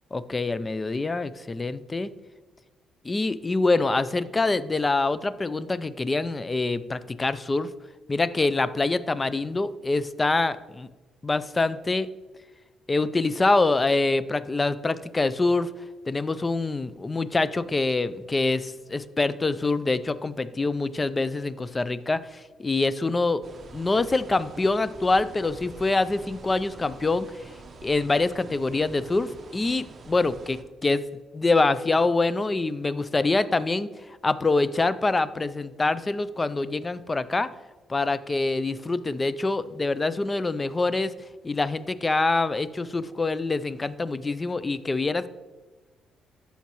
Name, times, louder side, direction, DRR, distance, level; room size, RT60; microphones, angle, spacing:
voice 1, 0.1-2.1 3.0-7.7 8.1-10.9 11.2-12.1 12.9-15.7 16.1-23.4 23.7-27.5 27.8-31.0 31.3-33.9 34.2-37.5 37.9-41.1 41.4-45.3, left 3 dB, 25° left, 15 dB, 0.4 m, -25 dB
sound 1, 23.4-30.6, right 3 dB, 40° right, 0.8 m, -46 dB
14.0 x 5.7 x 3.0 m, 1.2 s
cardioid pair, 90°, 0 cm